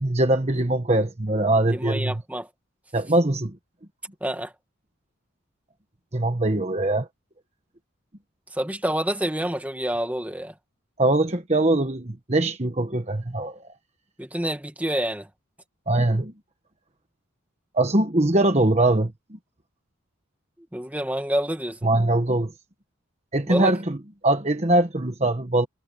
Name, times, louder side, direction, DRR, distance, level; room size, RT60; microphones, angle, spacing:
voice 1, 0.0-2.2 2.9-3.5 6.1-7.1 11.0-13.6 15.9-16.3 17.7-19.1 21.8-22.5 23.3-24.0 24.2-25.7, right 2 dB, 30° right, 1.3 m, -22 dB
voice 2, 1.7-2.5 4.2-4.5 8.5-10.5 14.2-15.3 20.7-21.8 23.5-23.7, right 1 dB, 5° right, 2.0 m, -27 dB
head